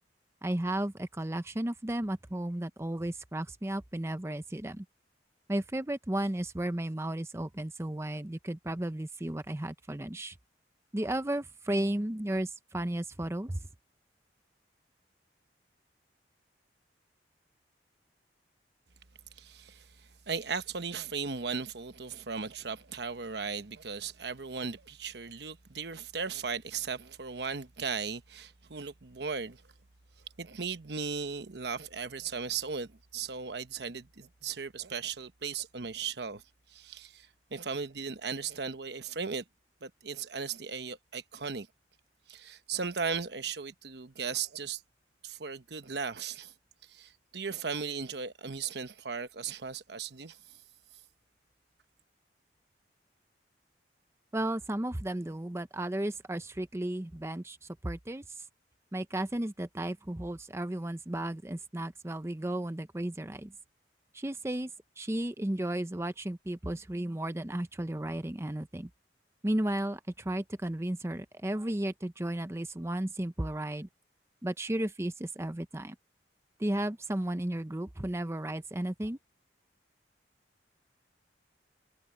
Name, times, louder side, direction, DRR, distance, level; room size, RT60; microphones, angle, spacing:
voice 1, 0.4-4.8 5.5-10.3 10.9-13.6 54.3-58.2 58.9-63.5 64.1-64.7 65.0-68.9 69.4-73.9 74.4-76.0 76.6-79.2, right 1 dB, 15° right, 0.6 m, -34 dB
voice 2, 19.4-29.6 30.4-36.4 36.7-39.4 39.8-41.7 42.3-44.8 45.2-46.5 46.8-50.6, right 5 dB, 65° right, 1.0 m, -37 dB
head